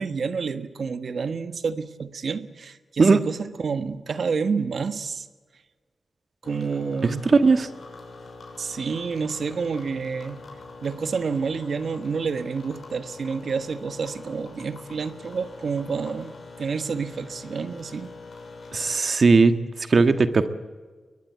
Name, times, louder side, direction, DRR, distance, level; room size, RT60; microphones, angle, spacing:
voice 1, 0.0-5.3 6.4-7.2 8.6-10.4 10.8-18.1, right 5 dB, 70° right, 11 dB, 1.4 m, -29 dB
sound 1, 6.4-19.0, left 3 dB, 65° left, 6.3 m, -44 dB
voice 2, 7.2-7.7 18.7-19.5 19.9-20.5, right 4 dB, 55° right, 9 dB, 1.6 m, -17 dB
22.0 x 20.0 x 9.0 m, 1.4 s
wide cardioid pair, 90°, 0 cm